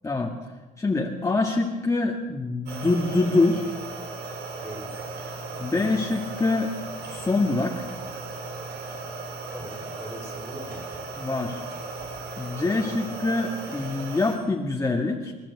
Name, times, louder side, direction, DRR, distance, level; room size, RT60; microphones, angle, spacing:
voice 1, 0.0-0.3 0.8-3.6 5.6-6.7 7.1-7.9 11.2-11.6 12.4-15.3, left 3 dB, 20° left, 1 dB, 1.9 m, -25 dB
sound 1, 2.7-14.4, right 3 dB, 75° right, 5.6 m, -36 dB
voice 2, 9.5-11.0 12.5-13.1, right 1 dB, 15° right, 5 dB, 4.6 m, -41 dB
25.5 x 13.0 x 8.3 m, 1.2 s
cardioid pair, 110°, 17 cm